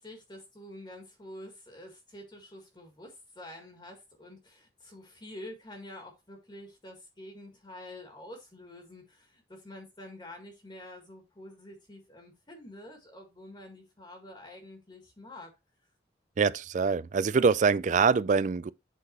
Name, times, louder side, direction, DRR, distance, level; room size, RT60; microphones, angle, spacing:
voice 1, 0.0-15.5, left 1 dB, 25° left, 1.8 m, -47 dB
voice 2, 16.4-18.7, right 5 dB, 45° right, 0.4 m, -24 dB
8.2 x 4.0 x 4.5 m
head